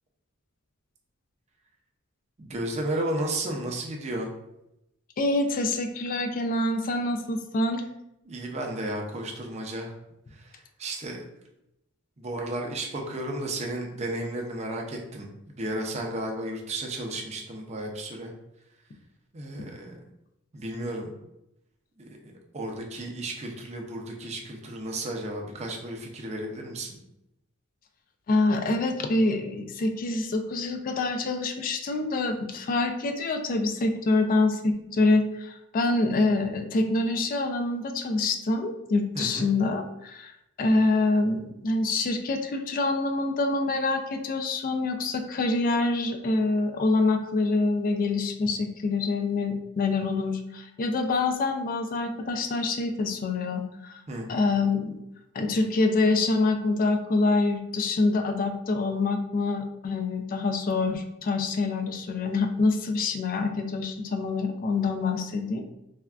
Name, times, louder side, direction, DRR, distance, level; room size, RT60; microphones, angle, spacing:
voice 1, 2.4-4.3 8.3-9.9 10.3-11.3 12.2-15.3 15.6-18.3 19.3-20.0 20.5-21.1 22.5-27.0 39.1-39.5 54.1-54.3, right 1 dB, 30° right, 1 dB, 0.5 m, -33 dB
voice 2, 5.2-7.8 28.3-40.3 40.6-54.0 54.3-55.0 55.3-65.6, left 3 dB, 40° left, 6 dB, 0.3 m, -26 dB
3.4 x 2.2 x 2.3 m, 0.85 s
head